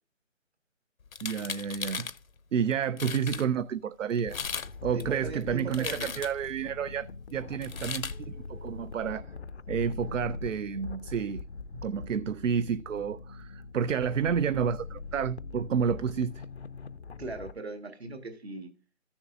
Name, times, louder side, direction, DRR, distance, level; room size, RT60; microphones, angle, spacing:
sound 1, 1.1-2.2 2.7-2.8 3.0-3.4 4.2-4.7 5.0-6.5 7.6-8.2, left 6 dB, 85° left, 0.8 m, -37 dB
voice 1, 1.2-2.1 2.5-4.4 4.8-9.3 9.7-11.4 11.8-16.4, right 7 dB, 70° right, 0.5 m, -30 dB
sound 2, 4.3-17.5, left 4 dB, 55° left, 0.5 m, -42 dB
voice 2, 4.9-6.2 17.2-18.7, right 3 dB, 50° right, 1.8 m, -39 dB
14.0 x 7.1 x 2.6 m
figure-of-eight pair, 175°, 40 cm